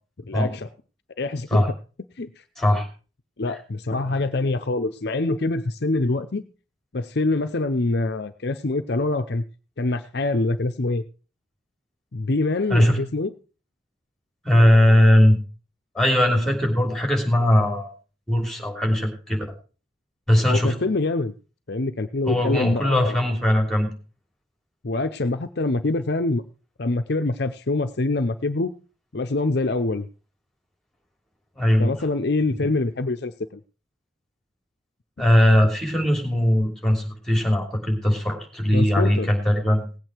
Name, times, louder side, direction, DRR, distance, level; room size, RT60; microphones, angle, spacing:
voice 1, 0.3-0.7 1.2-1.7 2.2-2.3 3.4-6.4 6.9-9.4 9.8-11.0 12.1-13.3 20.5-21.3 21.7-23.2 24.8-26.4 26.8-28.7 29.1-30.1 31.8-33.6 38.7-39.3, left 2 dB, 55° left, 8 dB, 0.7 m, -25 dB
voice 2, 2.6-2.9 3.9-4.1 12.7-13.0 14.4-15.4 15.9-17.9 18.3-19.4 20.3-20.7 22.3-23.9 31.6-31.9 35.2-39.9, left 1 dB, ahead, 2 dB, 3.1 m, -19 dB
18.0 x 8.5 x 4.5 m, 0.36 s
head